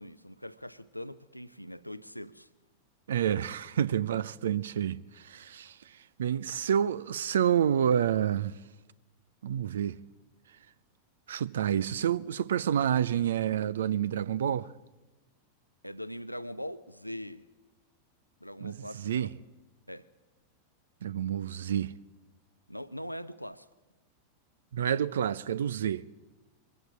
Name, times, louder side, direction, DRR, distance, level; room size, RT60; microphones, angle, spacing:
voice 1, 0.0-2.5 15.8-17.4 18.4-19.3 19.9-20.1 22.7-23.7, equal, 90° left, 0.7 m, -41 dB
voice 2, 3.1-5.8 6.2-8.6 9.4-10.0 11.3-14.7 18.6-19.3 21.0-21.9 24.7-26.0, right 9 dB, 65° right, 0.6 m, -28 dB
23.0 x 16.0 x 8.5 m
figure-of-eight pair, 90°, 0 cm